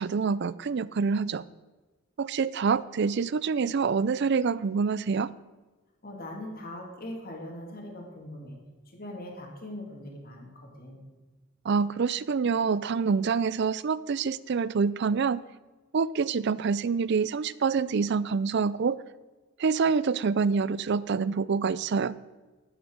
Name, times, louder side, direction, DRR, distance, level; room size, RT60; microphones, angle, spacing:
voice 1, 0.0-1.4 2.2-5.3 11.6-15.4 15.9-19.0 19.6-22.1, right 5 dB, 55° right, 18 dB, 0.4 m, -26 dB
voice 2, 6.0-8.6 8.9-11.0, left 1 dB, 45° left, 0 dB, 2.6 m, -41 dB
11.0 x 9.0 x 6.3 m, 1.2 s
head